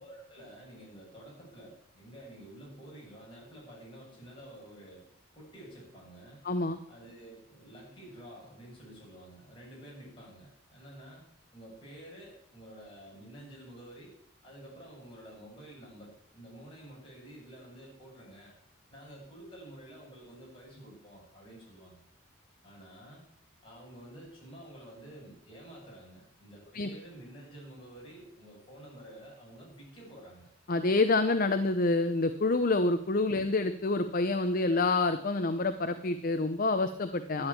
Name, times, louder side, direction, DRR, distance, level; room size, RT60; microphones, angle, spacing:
voice 1, 0.0-5.0 5.4-6.4 6.9-11.2 11.5-14.1 14.4-18.5 18.9-22.0 22.6-23.2 23.6-30.5, right 1 dB, 25° left, -4 dB, 7.6 m, -50 dB
voice 2, 6.4-6.8 26.7-26.9 30.7-37.5, left 3 dB, 45° left, 9 dB, 0.7 m, -27 dB
12.0 x 9.0 x 8.5 m, 0.73 s
head